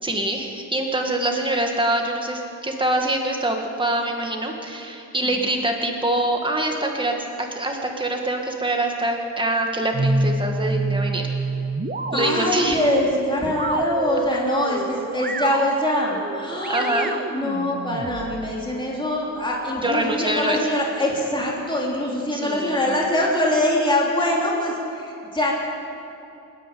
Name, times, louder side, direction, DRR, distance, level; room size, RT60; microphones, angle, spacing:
voice 1, 0.0-11.3 12.1-12.8 16.7-17.1 19.8-20.7 22.3-22.8, right 1 dB, 15° right, 2 dB, 2.1 m, -24 dB
sound 1, 9.9-18.5, right 3 dB, 35° right, 0.9 m, -27 dB
voice 2, 12.1-25.5, left 1 dB, 15° left, -3 dB, 3.3 m, -23 dB
29.0 x 10.0 x 9.3 m, 2.7 s
wide cardioid pair, 180°, 29 cm